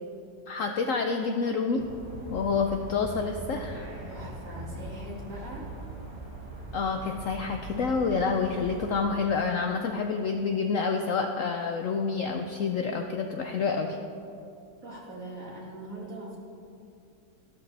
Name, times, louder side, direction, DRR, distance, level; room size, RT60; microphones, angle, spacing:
voice 1, 0.5-1.9 2.3-3.9 6.7-14.0, left 5 dB, 65° left, 4 dB, 0.8 m, -28 dB
sound 1, 1.8-9.0, right 1 dB, 75° right, 2.4 m, -41 dB
voice 2, 4.1-5.6 14.8-16.4, right 1 dB, 50° right, -3 dB, 2.4 m, -41 dB
14.0 x 12.5 x 3.3 m, 2.6 s
omnidirectional pair, 1.9 m